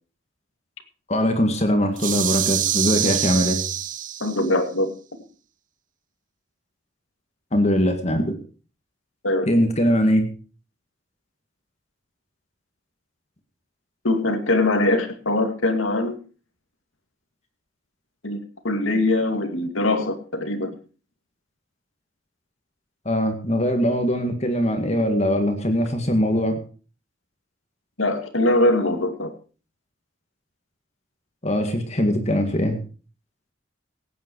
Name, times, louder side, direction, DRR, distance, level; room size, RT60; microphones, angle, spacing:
voice 1, 1.1-3.6 7.5-8.3 9.5-10.3 23.1-26.6 31.4-32.8, equal, 35° left, 6 dB, 1.9 m, -21 dB
sound 1, 2.0-4.5, right 11 dB, 40° right, 0.7 m, -25 dB
voice 2, 4.2-4.9 9.2-9.5 14.0-16.2 18.2-18.4 18.6-20.7 28.0-29.3, left 2 dB, 90° left, 7 dB, 2.4 m, -22 dB
17.0 x 9.3 x 4.7 m, 0.36 s
head